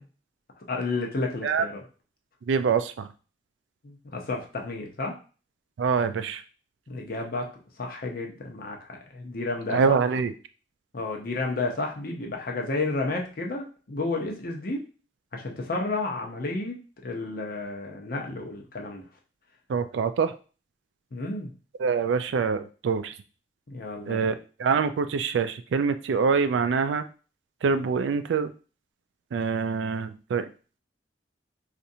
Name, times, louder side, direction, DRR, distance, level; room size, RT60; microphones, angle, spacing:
voice 1, 0.7-1.8 3.8-5.2 6.9-7.5 7.8-10.0 10.9-14.8 15.3-19.0 21.1-21.5 23.7-24.3, left 3 dB, 55° left, 1 dB, 0.7 m, -31 dB
voice 2, 2.5-3.1 5.8-6.4 9.7-10.3 19.7-20.3 21.8-23.1 24.1-27.0 27.6-28.5 29.3-30.5, right 5 dB, 85° right, 10 dB, 0.3 m, -25 dB
4.2 x 2.5 x 2.7 m, 0.37 s
head